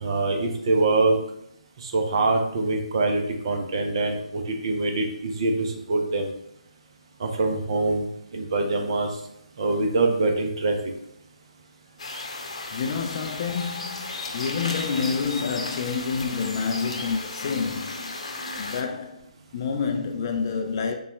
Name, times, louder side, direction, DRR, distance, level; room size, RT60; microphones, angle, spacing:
voice 1, 0.0-1.2 1.8-6.3 7.2-8.1 8.3-9.1 9.6-10.8, right 3 dB, 40° right, 0.7 m, -24 dB
sound 1, 12.0-18.8, left 2 dB, 55° left, 0.9 m, -34 dB
voice 2, 12.7-18.1 18.6-20.9, left 5 dB, 30° left, 0.4 m, -28 dB
6.6 x 2.4 x 3.1 m
figure-of-eight pair, 140°, 4 cm